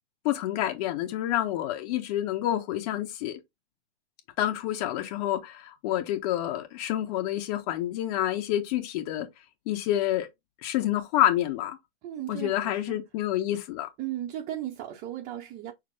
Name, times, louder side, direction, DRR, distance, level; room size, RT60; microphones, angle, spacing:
voice 1, 0.2-3.4 4.4-9.3 9.7-10.3 10.6-11.8 12.3-13.9, left 13 dB, 35° left, 1.3 m, -28 dB
voice 2, 12.0-13.0 14.0-15.7, right 12 dB, 20° right, 0.7 m, -36 dB
6.3 x 2.2 x 3.6 m
hypercardioid pair, 125°, 32 cm